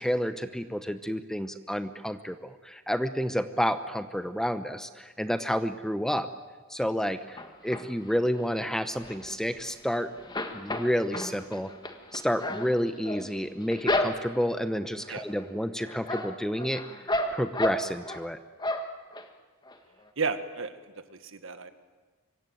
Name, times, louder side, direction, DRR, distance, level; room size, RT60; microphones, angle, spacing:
voice 1, 0.0-6.3 6.7-10.1 10.5-11.7 12.1-16.8 17.3-18.4, equal, ahead, 10 dB, 0.8 m, -30 dB
sound 1, 7.4-8.1 8.6-9.9 10.2-14.6 15.0-15.5 15.8-18.3 18.6-19.3 19.7-19.8 20.0-20.1, left 1 dB, 20° left, 1.7 m, -32 dB
voice 2, 20.2-20.7 21.1-21.7, right 4 dB, 60° right, 9 dB, 1.7 m, -32 dB
25.5 x 23.0 x 9.3 m, 1.4 s
head